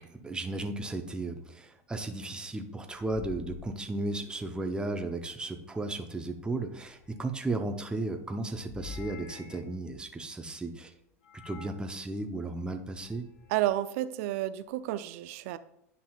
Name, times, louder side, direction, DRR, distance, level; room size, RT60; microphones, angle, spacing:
voice 1, 0.0-10.9 11.4-13.3, right 2 dB, 10° right, 5 dB, 0.8 m, -35 dB
sound 1, 3.1-4.6 6.4-7.6 8.6-9.8 11.2-11.9 12.8-13.7, left 6 dB, 75° left, 1.8 m, -48 dB
voice 2, 13.5-15.6, right 14 dB, 65° right, 13 dB, 0.5 m, -31 dB
10.0 x 5.5 x 2.4 m, 0.76 s
hypercardioid pair, 90°, 8 cm